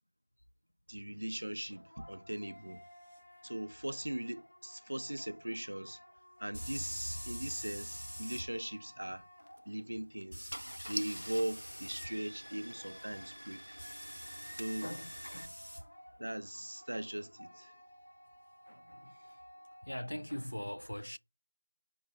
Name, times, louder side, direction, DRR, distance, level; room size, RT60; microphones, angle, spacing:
voice 1, 0.9-2.8 3.4-6.0 6.4-9.2 9.7-10.5 10.9-13.8 14.0-14.2 14.6-14.9 16.2-17.7, right 1 dB, 40° right, 0.4 m, -40 dB
sound 1, 1.4-10.1 12.4-20.2, left 1 dB, 30° left, 0.8 m, -58 dB
sound 2, 3.1-3.2 6.5-8.4 10.3-12.1 13.8-15.8, equal, 5° left, 1.0 m, -45 dB
Car / Engine starting, 9.4-9.6 10.2-10.3 10.5-15.5, equal, 80° right, 0.7 m, -46 dB
voice 2, 14.8-15.5 18.7-19.1 19.8-21.2, equal, 60° left, 0.3 m, -41 dB
5.3 x 2.3 x 4.1 m
figure-of-eight pair, 180°, 0 cm